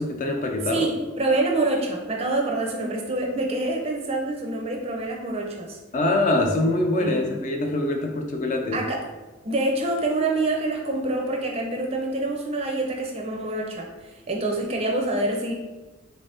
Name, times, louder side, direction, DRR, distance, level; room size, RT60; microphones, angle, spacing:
voice 1, 0.0-0.9 5.9-8.8, left 2 dB, 35° left, 3 dB, 0.3 m, -24 dB
voice 2, 0.7-5.8 7.0-7.3 8.7-9.0 9.4-15.5, right 2 dB, 30° right, 0 dB, 0.4 m, -26 dB
3.4 x 2.7 x 3.3 m, 1.2 s
head